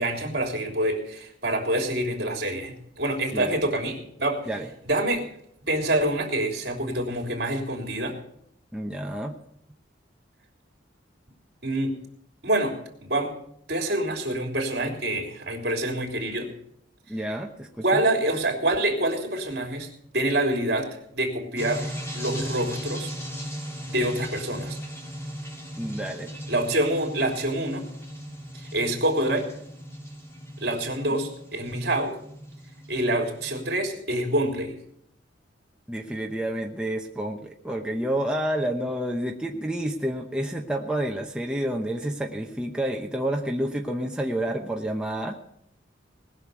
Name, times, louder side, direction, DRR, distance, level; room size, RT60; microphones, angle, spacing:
voice 1, 0.0-4.4 4.9-5.3 5.7-8.2 11.6-12.0 12.4-12.8 13.0-13.3 13.7-16.5 17.8-23.1 23.9-24.8 26.5-27.8 28.6-29.5 30.6-32.1 32.9-34.7, right 1 dB, 60° right, 3 dB, 3.3 m, -26 dB
voice 2, 3.3-3.7 4.5-4.7 8.7-9.3 17.1-18.0 25.8-26.3 31.1-31.2 35.9-45.4, right 1 dB, 5° right, 0 dB, 0.9 m, -29 dB
sound 1, 21.6-33.7, equal, 15° left, 2.6 m, -37 dB
19.5 x 6.6 x 8.4 m, 0.71 s
head